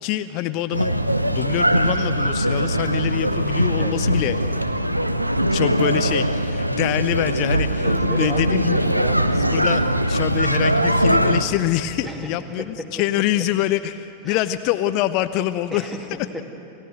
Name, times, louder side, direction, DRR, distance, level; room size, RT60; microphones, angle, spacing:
voice 1, 0.0-0.9 1.2-4.5 5.4-8.8 9.3-15.9, left 13 dB, 45° left, 10 dB, 0.6 m, -25 dB
sound 1, 0.7-11.4, right 1 dB, 85° right, 0.8 m, -21 dB
voice 2, 7.8-9.3 12.0-12.3 12.6-12.9 14.3-14.4 15.7-16.4, equal, 10° right, 3 dB, 2.6 m, -33 dB
28.5 x 16.5 x 8.0 m, 2.7 s
figure-of-eight pair, 90°, 0 cm